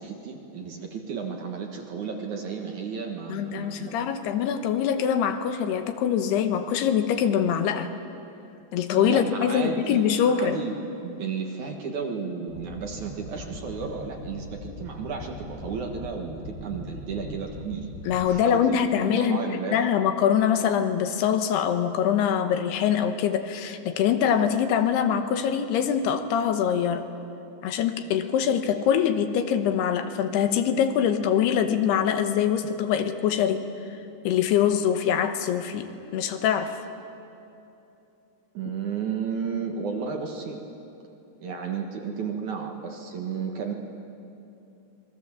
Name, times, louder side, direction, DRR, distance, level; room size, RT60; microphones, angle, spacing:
voice 1, 0.0-4.1 8.9-17.9 18.3-18.8 19.1-19.8 38.5-40.6 41.4-43.7, right 6 dB, 55° right, 2 dB, 2.4 m, -33 dB
voice 2, 3.3-7.9 8.7-10.6 18.1-19.4 19.7-27.1 27.6-33.7 34.2-36.8, left 8 dB, 80° left, 8 dB, 3.1 m, -24 dB
sound 1, 12.5-18.2, left 1 dB, 60° left, 3.9 m, -40 dB
27.0 x 22.0 x 7.4 m, 2.8 s
omnidirectional pair, 4.7 m